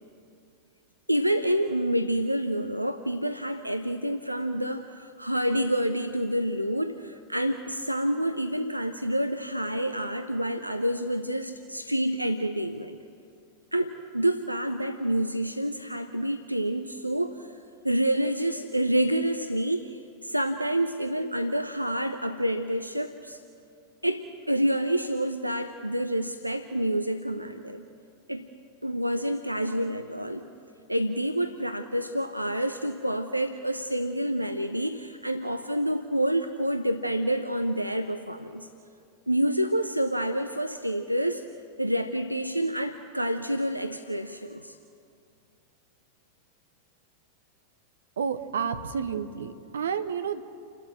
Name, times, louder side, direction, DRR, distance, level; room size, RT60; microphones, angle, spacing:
voice 1, 1.1-13.0 13.7-17.6 17.8-23.4 24.0-27.9 28.3-28.5 28.8-30.5 30.9-38.7 39.3-41.5 41.8-44.8, right 1 dB, 90° right, 9 dB, 0.6 m, -28 dB
voice 2, 48.2-50.4, right 7 dB, 65° right, 9 dB, 1.0 m, -30 dB
29.0 x 12.5 x 7.5 m, 2.5 s
figure-of-eight pair, 90°, 0 cm